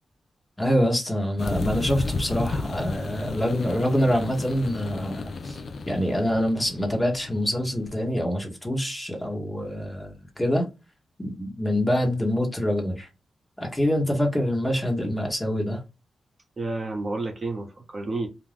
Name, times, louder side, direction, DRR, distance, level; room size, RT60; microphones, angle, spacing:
voice 1, 0.6-10.7 11.2-13.1 13.6-15.8, equal, 15° left, 1.0 m, -25 dB
sound 1, 1.4-8.0, left 3 dB, 65° left, 0.4 m, -33 dB
voice 2, 16.6-18.3, right 2 dB, 40° right, 0.8 m, -30 dB
2.5 x 2.2 x 3.3 m
cardioid pair, 80°, 0 cm